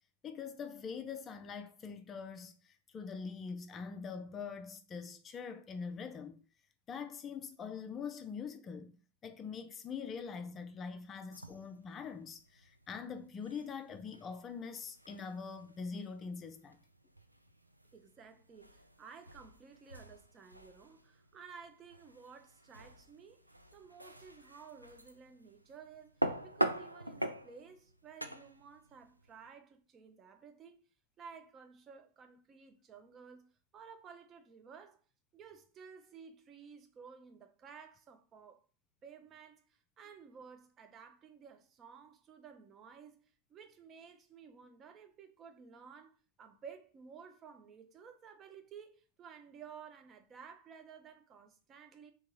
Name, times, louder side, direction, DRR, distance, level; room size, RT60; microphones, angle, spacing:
voice 1, 0.2-2.5 2.9-6.4 6.9-8.9 9.2-16.8, left 5 dB, 25° left, 0.4 m, -43 dB
sound 1, 11.3-29.5, right 1 dB, 90° right, 0.3 m, -44 dB
voice 2, 17.9-23.5 23.7-30.8 31.2-35.0 35.3-38.6 39.0-39.6 40.0-43.2 43.5-52.1, right 6 dB, 25° right, 0.5 m, -54 dB
3.5 x 2.9 x 3.0 m
figure-of-eight pair, 90°, 0 cm